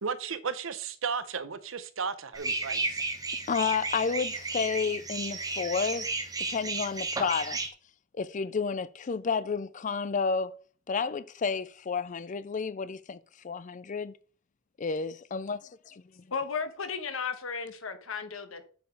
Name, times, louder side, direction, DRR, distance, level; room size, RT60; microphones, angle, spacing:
voice 1, 0.0-3.0, right 5 dB, 75° right, 0.8 m, -34 dB
sound 1, 2.3-7.7, right 3 dB, 20° right, 1.1 m, -33 dB
voice 2, 3.5-6.1 6.5-7.6 8.1-10.6 10.9-14.1 14.8-16.2, left 5 dB, 40° left, 0.4 m, -31 dB
voice 3, 16.3-18.6, left 5 dB, 85° left, 1.2 m, -34 dB
7.9 x 5.1 x 4.6 m
head